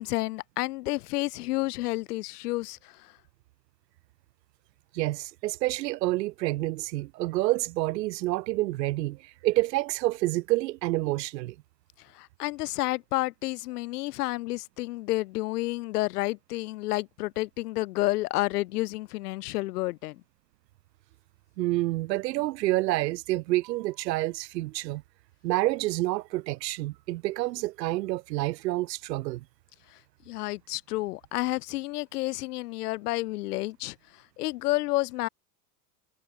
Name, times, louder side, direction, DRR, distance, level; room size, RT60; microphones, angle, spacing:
voice 1, 0.0-3.1 12.1-20.2 30.3-35.3, left 19 dB, 70° left, 0.7 m, -30 dB
voice 2, 4.9-9.2 9.4-11.5 21.6-25.0 25.4-29.4, right 18 dB, 80° right, 0.8 m, -28 dB
supercardioid pair, 175°, 49 cm